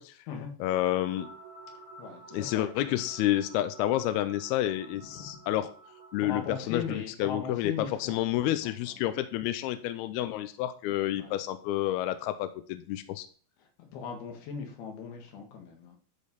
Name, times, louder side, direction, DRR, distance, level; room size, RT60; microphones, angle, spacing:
voice 1, 0.6-1.3 2.3-5.7 6.1-13.3, left 13 dB, 85° left, 2.2 m, -29 dB
sound 1, 0.7-6.6, right 3 dB, 90° right, 3.9 m, -50 dB
voice 2, 2.0-3.0 5.1-5.4 6.2-8.8 11.2-11.4 13.6-16.0, left 6 dB, 65° left, 3.6 m, -39 dB
12.0 x 5.3 x 4.1 m
omnidirectional pair, 5.3 m